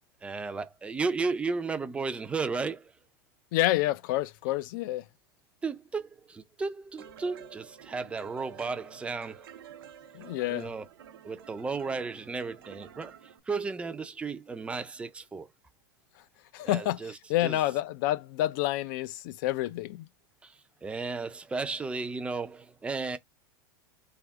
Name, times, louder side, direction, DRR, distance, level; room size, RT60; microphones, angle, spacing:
voice 1, 0.2-2.9 5.6-9.5 10.5-10.9 11.2-13.1 13.5-15.5 16.6-17.1 17.4-17.6 20.4-23.2, right 4 dB, 10° right, 0.4 m, -34 dB
voice 2, 3.5-5.1 10.1-10.7 16.5-20.1, left 15 dB, 55° left, 0.4 m, -29 dB
sound 1, 7.0-13.4, right 9 dB, 90° right, 0.7 m, -50 dB
3.5 x 2.3 x 3.5 m
supercardioid pair, 145°, 12 cm